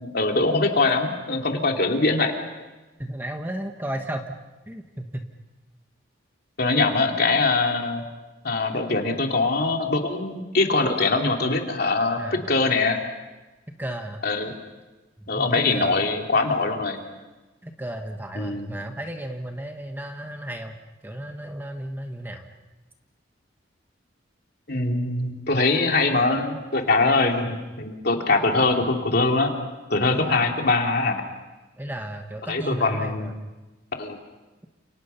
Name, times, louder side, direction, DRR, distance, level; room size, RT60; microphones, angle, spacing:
voice 1, 0.0-2.3 6.6-8.0 8.4-13.0 14.2-14.6 15.3-17.0 18.3-18.7 24.7-29.5 29.9-31.2 32.5-33.3 33.9-34.2, left 3 dB, 55° left, 2 dB, 3.0 m, -22 dB
voice 2, 3.0-4.3 4.7-5.3 12.2-12.6 13.8-14.2 15.2-16.1 17.6-20.8 21.0-22.5 27.0-27.3 30.1-30.5 31.8-33.3, right 1 dB, 10° right, 4 dB, 1.3 m, -34 dB
30.0 x 28.5 x 5.8 m, 1.1 s
head